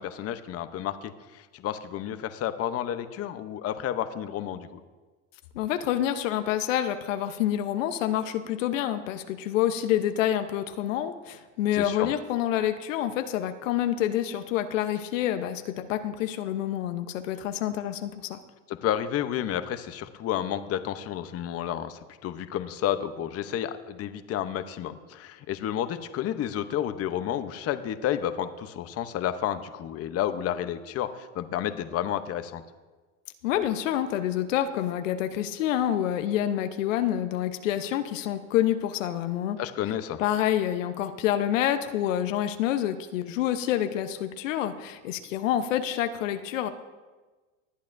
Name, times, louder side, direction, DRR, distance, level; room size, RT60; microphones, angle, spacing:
voice 1, 0.0-4.8 11.7-12.1 18.7-32.6 39.6-40.2, left 10 dB, 40° left, 10 dB, 0.9 m, -31 dB
voice 2, 5.5-18.4 33.4-39.6 40.2-46.7, left 11 dB, 85° left, 9 dB, 1.0 m, -27 dB
19.5 x 11.5 x 2.6 m, 1.3 s
supercardioid pair, 105°, 37 cm